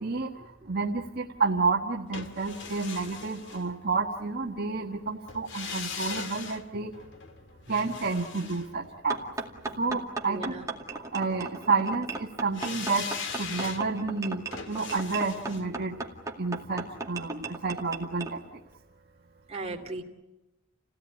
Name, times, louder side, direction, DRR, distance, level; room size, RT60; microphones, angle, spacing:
voice 1, 0.7-6.9 7.7-9.2 9.8-10.5 11.1-13.1 13.4-14.4 14.7-16.0 16.4-18.4, right 4 dB, 55° right, 0 dB, 1.5 m, -30 dB
sound 1, 2.1-4.2 5.3-9.5 12.5-17.5 17.8-17.9, left 5 dB, 65° left, 2.1 m, -40 dB
sound 2, 9.1-18.3, right 3 dB, 15° right, 2.3 m, -37 dB
voice 2, 10.3-10.6 19.5-20.0, right 2 dB, 30° right, 2 dB, 2.6 m, -37 dB
29.0 x 17.5 x 9.9 m, 0.99 s
head